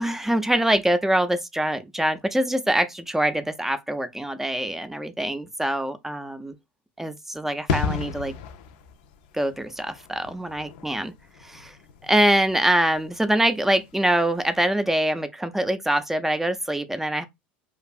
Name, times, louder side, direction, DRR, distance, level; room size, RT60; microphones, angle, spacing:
voice 1, 0.0-6.5 7.0-8.3 9.3-11.1 11.4-11.8 12.0-17.2, right 1 dB, 5° right, 0.4 m, -24 dB
sound 1, 7.7-14.2 14.4-14.6, left 6 dB, 70° left, 0.4 m, -34 dB
2.5 x 2.4 x 2.3 m
hypercardioid pair, 85°, 5 cm